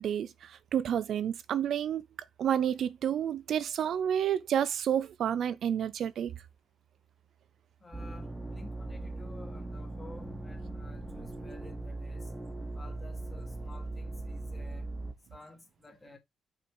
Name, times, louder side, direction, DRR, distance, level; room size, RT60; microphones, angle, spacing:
voice 1, 0.0-2.1 2.4-6.3, right 9 dB, 60° right, 0.5 m, -30 dB
voice 2, 7.8-12.3 12.8-14.9 15.3-16.2, left 2 dB, 20° left, 2.1 m, -53 dB
sound 1, 7.9-15.1, right 2 dB, 10° right, 1.4 m, -39 dB
6.1 x 4.7 x 4.8 m
cardioid pair, 160°, 0 cm